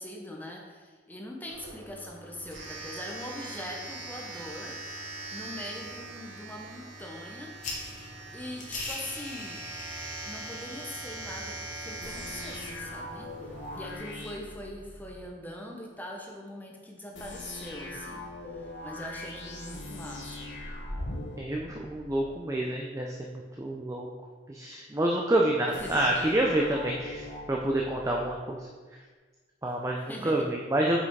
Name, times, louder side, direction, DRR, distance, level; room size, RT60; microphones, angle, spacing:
voice 1, 0.0-4.7 5.3-7.5 8.3-9.6 10.2-13.3 13.7-18.2 18.5-20.5 25.8-26.0 30.1-30.5, left 1 dB, 10° left, -1 dB, 0.8 m, -42 dB
Domestic sounds home sounds, 1.5-14.0, right 2 dB, 75° right, 1.5 m, -42 dB
sound 1, 7.6-13.7, left 2 dB, 40° left, 1.3 m, -43 dB
sound 2, 12.0-15.3 17.1-22.4 25.7-28.4, left 1 dB, 75° left, 1.1 m, -41 dB
voice 2, 21.4-24.1 24.5-28.7 29.6-31.0, right 1 dB, 15° right, 0 dB, 0.4 m, -28 dB
5.8 x 4.9 x 4.6 m, 1.4 s
head